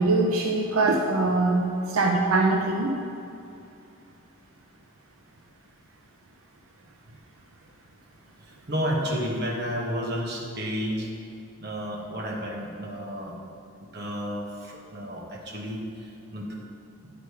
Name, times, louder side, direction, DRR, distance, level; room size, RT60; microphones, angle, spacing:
voice 1, 0.0-3.0, right 2 dB, 90° right, 0 dB, 0.7 m, -23 dB
voice 2, 8.7-11.1 11.6-13.3 13.9-15.8 16.3-16.5, equal, 50° right, -2 dB, 1.3 m, -31 dB
9.9 x 5.0 x 4.8 m, 2.6 s
head